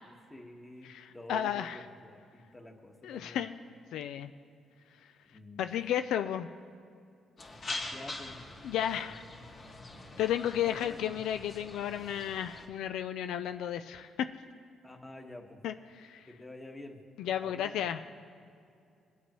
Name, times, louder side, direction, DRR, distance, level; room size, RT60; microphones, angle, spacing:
voice 1, 0.0-3.4 5.3-5.6 7.9-8.4 10.6-11.2 14.8-15.6 16.3-17.0 17.4-17.8, left 2 dB, 15° left, 2 dB, 1.4 m, -48 dB
voice 2, 0.9-1.8 3.0-3.6 3.9-4.3 5.6-6.5 8.6-9.2 10.2-14.3 15.6-16.3 17.2-18.1, left 10 dB, 85° left, 9 dB, 0.3 m, -33 dB
philadelphia independencehall front, 7.4-12.7, left 2 dB, 50° left, 1.9 m, -44 dB
20.0 x 8.2 x 3.0 m, 2.5 s
cardioid pair, 90°, 0 cm